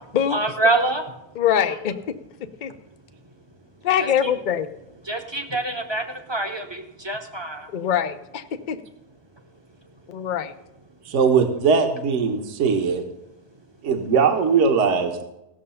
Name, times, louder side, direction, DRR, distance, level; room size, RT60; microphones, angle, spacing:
voice 1, 0.3-1.0 4.0-4.4 5.0-7.7, right 2 dB, 20° right, 4 dB, 0.8 m, -25 dB
voice 2, 1.4-2.0 2.6-2.7 3.8-4.7 7.7-8.8 10.1-10.5, left 9 dB, 60° left, 10 dB, 0.4 m, -23 dB
voice 3, 11.1-13.0 13.8-15.2, right 5 dB, 55° right, 6 dB, 1.3 m, -20 dB
15.5 x 6.6 x 5.6 m, 0.88 s
omnidirectional pair, 1.6 m